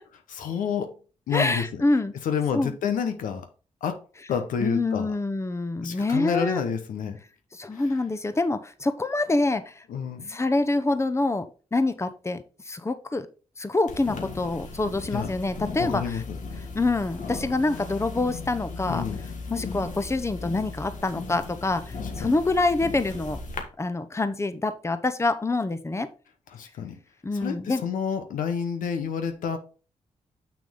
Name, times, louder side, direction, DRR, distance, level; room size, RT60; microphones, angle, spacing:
voice 1, 0.3-0.9 1.3-1.8 2.2-3.4 3.8-4.0 4.3-5.1 5.8-7.2 7.7-7.8 9.9-10.4 15.1-15.3 15.8-16.4 18.9-19.2 22.0-22.4 26.5-27.0 27.3-29.6, left 7 dB, 90° left, 7 dB, 1.1 m, -29 dB
voice 2, 1.3-2.1 2.5-2.7 4.6-6.6 7.5-9.8 10.3-11.5 11.7-13.3 13.6-16.2 16.7-19.0 19.5-23.4 23.8-26.1 27.2-27.8, left 2 dB, 20° left, 11 dB, 0.8 m, -26 dB
sound 1, 13.9-23.6, left 4 dB, 70° left, 1.6 m, -37 dB
6.9 x 6.0 x 3.7 m, 0.35 s
cardioid pair, 60°, 13 cm